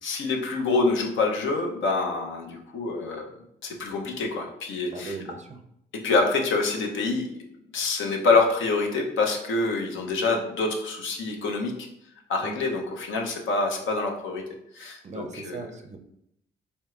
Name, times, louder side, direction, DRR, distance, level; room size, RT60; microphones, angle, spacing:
voice 1, 0.0-3.3 3.6-5.1 5.9-7.3 7.7-11.8 12.3-14.4 14.7-15.6, left 3 dB, 75° left, 2 dB, 0.9 m, -26 dB
voice 2, 4.9-5.6 12.4-12.6 15.0-16.0, right 4 dB, 35° right, 7 dB, 0.5 m, -38 dB
4.6 x 3.3 x 2.4 m, 0.78 s
cardioid pair, 90°, 20 cm